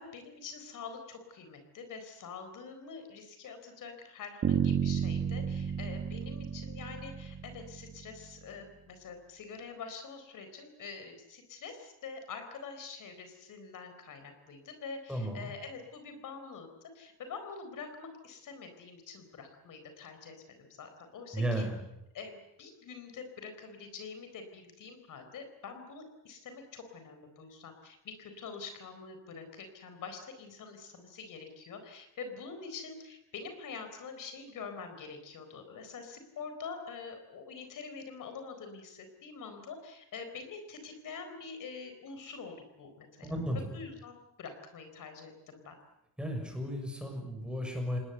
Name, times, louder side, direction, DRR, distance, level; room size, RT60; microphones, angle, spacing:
voice 1, 0.0-21.6 22.1-22.3 22.6-43.3 43.7-45.7, left 5 dB, 55° left, 7 dB, 4.4 m, -45 dB
Bass guitar, 4.4-8.4, right 7 dB, 35° right, 1.9 m, -32 dB
voice 2, 15.1-15.5 21.3-21.8 43.2-43.7 46.2-48.0, equal, ahead, 3 dB, 6.5 m, -34 dB
28.0 x 20.0 x 8.1 m, 0.85 s
cardioid pair, 165°, 38 cm